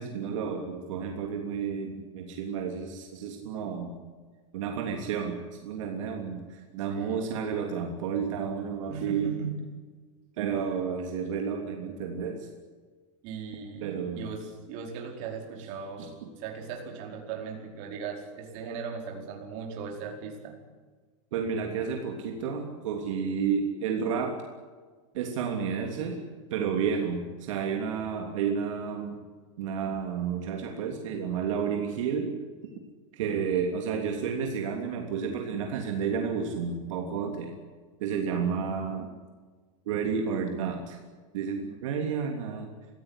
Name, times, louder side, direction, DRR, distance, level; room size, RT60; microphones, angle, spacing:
voice 1, 0.0-4.0 4.5-9.3 10.4-12.5 13.8-14.3 16.0-16.1 21.3-24.4 25.1-26.2 26.5-29.2 29.6-32.4 33.1-37.5 38.0-39.1 39.9-41.0 41.3-42.7, right 6 dB, 65° right, 2 dB, 3.2 m, -31 dB
voice 2, 6.9-7.3 8.9-9.6 13.2-20.6, right 6 dB, 40° right, 1 dB, 4.9 m, -38 dB
23.5 x 16.0 x 10.0 m, 1.4 s
supercardioid pair, 170°, 17 cm